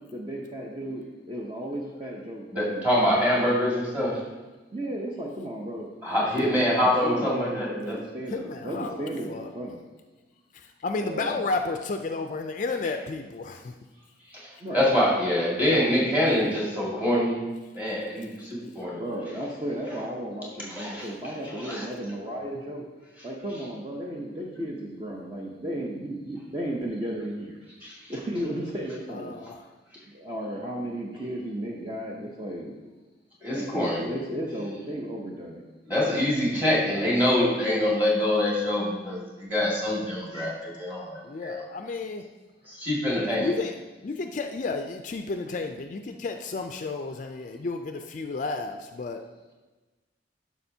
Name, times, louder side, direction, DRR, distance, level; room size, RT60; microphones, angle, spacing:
voice 1, 0.1-2.9 4.7-9.8 11.0-11.4 14.6-14.9 18.9-22.9 23.2-27.6 28.1-29.3 30.1-32.8 33.5-35.6 40.3-40.5, right 1 dB, 25° right, -2 dB, 0.7 m, -34 dB
voice 2, 2.5-4.2 6.0-8.0 14.7-17.4 17.7-19.1 20.7-21.1 21.6-21.8 27.8-27.9 33.4-34.0 35.9-41.6 42.7-43.5, left 1 dB, 10° right, -6 dB, 2.0 m, -25 dB
voice 3, 8.3-9.5 10.5-13.7 29.1-29.7 41.2-42.3 43.3-49.2, left 3 dB, 45° left, 5 dB, 0.4 m, -32 dB
11.5 x 6.0 x 2.7 m, 1.2 s
head